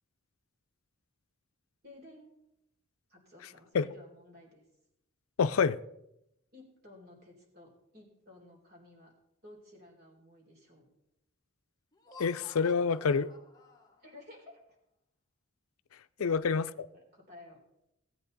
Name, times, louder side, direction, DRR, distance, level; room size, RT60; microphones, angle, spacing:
voice 1, 1.8-2.4 3.1-4.6 6.5-9.1 9.4-10.9 14.0-14.8 16.2-16.4 16.6-17.6, left 2 dB, 45° right, 0 dB, 3.7 m, -55 dB
voice 2, 5.4-5.8 12.2-13.3 16.2-16.9, left 5 dB, 80° left, 13 dB, 0.5 m, -27 dB
Laughter, 11.9-14.3, left 3 dB, 15° left, 1.2 m, -53 dB
17.5 x 8.5 x 4.1 m, 0.84 s
head